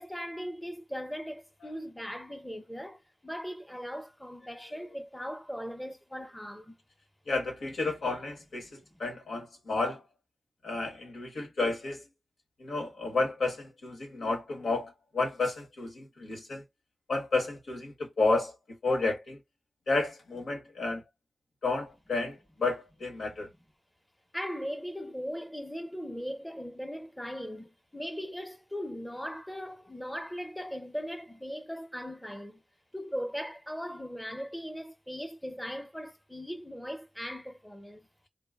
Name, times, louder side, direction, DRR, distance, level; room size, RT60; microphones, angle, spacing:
voice 1, 0.0-6.8 24.3-32.6 32.9-38.1, equal, 10° left, 0.7 m, -39 dB
voice 2, 7.3-10.0 10.6-12.0 12.6-16.6 17.1-18.6 18.8-19.4 19.9-21.0 21.6-23.5, left 3 dB, 90° left, 1.1 m, -31 dB
3.7 x 2.1 x 2.2 m
cardioid pair, 40°, 0 cm